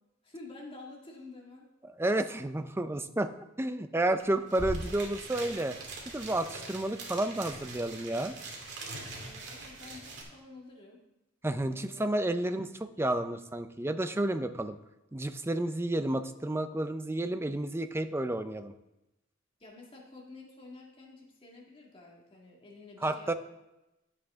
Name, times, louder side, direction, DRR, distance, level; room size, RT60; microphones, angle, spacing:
voice 1, 0.2-1.7 9.1-11.0 11.6-12.3 19.6-23.3, left 3 dB, 25° left, -2 dB, 1.9 m, -50 dB
voice 2, 2.0-3.3 3.6-5.7 6.1-8.3 11.4-14.8 15.1-18.7 23.0-23.3, right 1 dB, 10° right, 9 dB, 0.5 m, -31 dB
sound 1, 4.2-4.3 4.5-10.2, right 2 dB, 55° right, 2.3 m, -42 dB
12.0 x 7.7 x 3.6 m, 0.95 s
head